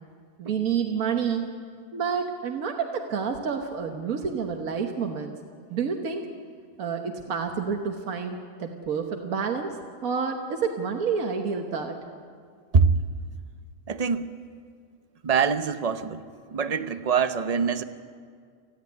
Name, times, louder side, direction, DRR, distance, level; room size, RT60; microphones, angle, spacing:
voice 1, 0.4-1.5 1.9-5.4 5.7-6.3 6.8-12.0, right 6 dB, 80° right, 3 dB, 1.6 m, -29 dB
voice 2, 13.9-14.3 15.2-16.2 16.5-17.8, right 5 dB, 35° right, 11 dB, 0.7 m, -23 dB
29.5 x 10.5 x 9.6 m, 2.1 s
omnidirectional pair, 1.5 m